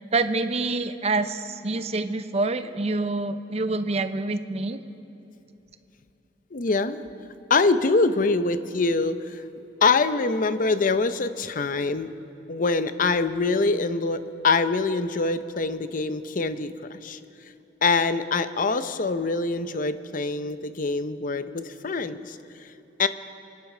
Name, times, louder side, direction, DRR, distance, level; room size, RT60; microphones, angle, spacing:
voice 1, 0.0-4.8, right 3 dB, 35° right, 10 dB, 0.7 m, -26 dB
voice 2, 6.5-7.0 7.5-9.4 9.8-12.1 12.5-17.2 17.8-22.4 23.0-23.1, left 3 dB, 50° left, 11 dB, 0.7 m, -24 dB
25.5 x 10.5 x 5.0 m, 3.0 s
head